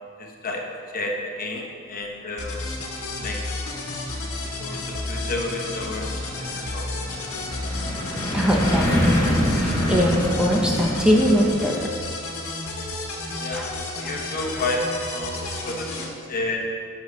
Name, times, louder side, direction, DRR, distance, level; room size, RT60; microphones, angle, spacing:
voice 1, 0.2-0.6 0.9-2.6 3.2-3.4 4.1-6.9 8.3-8.4 13.4-13.7 14.0-16.7, left 2 dB, 45° left, 0 dB, 1.1 m, -31 dB
sound 1, 2.4-16.1, left 2 dB, 80° left, 1.3 m, -32 dB
sound 2, 5.1-11.5, equal, 20° left, 1.3 m, -25 dB
voice 2, 8.3-11.9 13.5-13.7, equal, 5° right, -1 dB, 0.7 m, -22 dB
11.5 x 6.4 x 3.2 m, 2.2 s
head